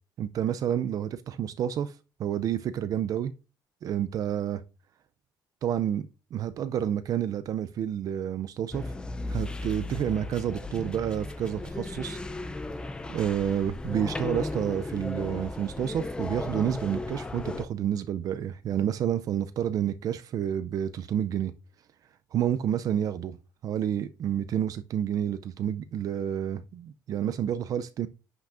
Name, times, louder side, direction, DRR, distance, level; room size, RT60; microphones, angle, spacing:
voice 1, 0.2-1.9 2.2-3.3 3.8-4.6 5.6-8.9 9.3-12.2 13.1-21.5 22.3-23.4 23.6-28.1, right 10 dB, 50° right, 0.4 m, -29 dB
sound 1, 8.7-17.7, left 2 dB, 10° left, 0.4 m, -35 dB
10.0 x 5.9 x 2.5 m
cardioid pair, 175°, 8 cm